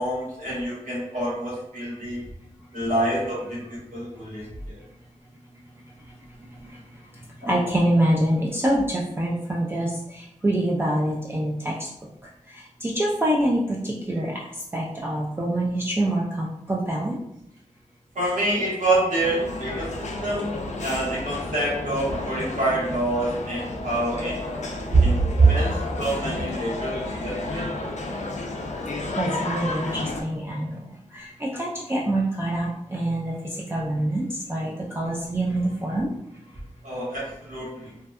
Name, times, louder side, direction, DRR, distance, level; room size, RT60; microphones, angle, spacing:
voice 1, 0.0-2.2 2.7-4.8 7.4-7.5 18.1-24.4 25.0-27.9 36.8-37.9, right 1 dB, 85° right, -6 dB, 1.1 m, -28 dB
voice 2, 7.4-11.9 12.5-17.2 24.9-25.0 25.4-25.5 29.2-30.8 31.1-36.1, right 1 dB, 20° right, -4 dB, 0.3 m, -24 dB
sound 1, 19.2-30.2, left 2 dB, 60° left, 0.4 m, -32 dB
2.6 x 2.2 x 2.3 m, 0.78 s
wide cardioid pair, 115°, 13 cm